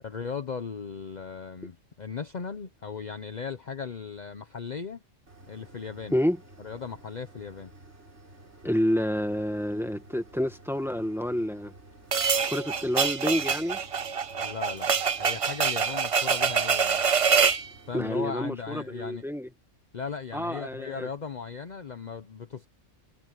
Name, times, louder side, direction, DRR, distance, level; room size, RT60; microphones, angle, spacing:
voice 1, 0.0-5.0 5.5-6.2 6.6-7.7 14.4-14.9 15.2-17.0 17.9-19.2 19.9-22.7, left 6 dB, 40° left, 0.9 m, -37 dB
sound 1, 5.3-18.3, right 2 dB, 65° right, 5.1 m, -52 dB
voice 2, 8.6-11.7 12.5-13.8 17.9-19.5 20.3-21.1, equal, ahead, 1.6 m, -28 dB
sound 2, 12.1-17.7, right 6 dB, 45° right, 0.4 m, -25 dB
omnidirectional pair, 1.3 m